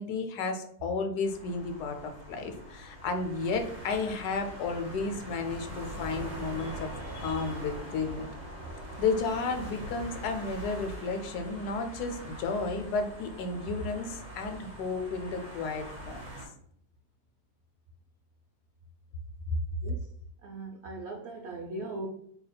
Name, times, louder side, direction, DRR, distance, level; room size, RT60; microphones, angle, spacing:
voice 1, 0.0-8.3 9.0-16.2, left 4 dB, 80° left, 6 dB, 1.1 m, -33 dB
sound 1, 1.2-16.5, right 1 dB, 40° right, 1.1 m, -43 dB
voice 2, 6.9-7.3 19.8-20.0 20.4-22.1, right 2 dB, 80° right, 1 dB, 0.6 m, -40 dB
5.0 x 2.8 x 2.2 m, 0.66 s
omnidirectional pair, 1.7 m